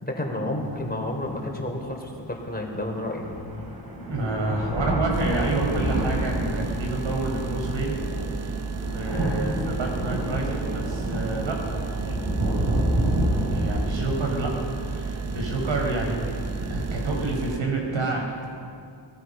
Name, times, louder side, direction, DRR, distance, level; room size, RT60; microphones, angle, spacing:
voice 1, 0.0-3.4, left 1 dB, 20° left, 1 dB, 4.1 m, -30 dB
sound 1, 0.7-0.8 1.5-1.6 2.8-2.9 3.2-17.2, right 1 dB, 50° right, 4.4 m, -29 dB
voice 2, 4.0-8.4 8.8-12.2 13.2-18.5, right 2 dB, 85° right, 0 dB, 5.3 m, -29 dB
sound 2, 5.1-17.6, right 5 dB, 35° right, 0.8 m, -33 dB
24.0 x 19.0 x 5.7 m, 2.3 s
wide cardioid pair, 85°, 45 cm